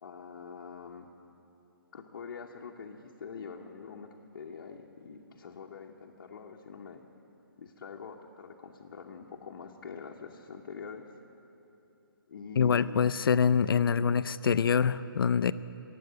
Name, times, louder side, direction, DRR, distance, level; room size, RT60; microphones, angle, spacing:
voice 1, 0.0-1.1 1.9-7.0 7.6-11.0 12.3-13.1, left 5 dB, 50° left, -1 dB, 0.9 m, -45 dB
voice 2, 12.6-15.5, left 6 dB, 70° left, 15 dB, 0.4 m, -25 dB
17.5 x 7.9 x 9.4 m, 3.0 s
hypercardioid pair, 160°, 12 cm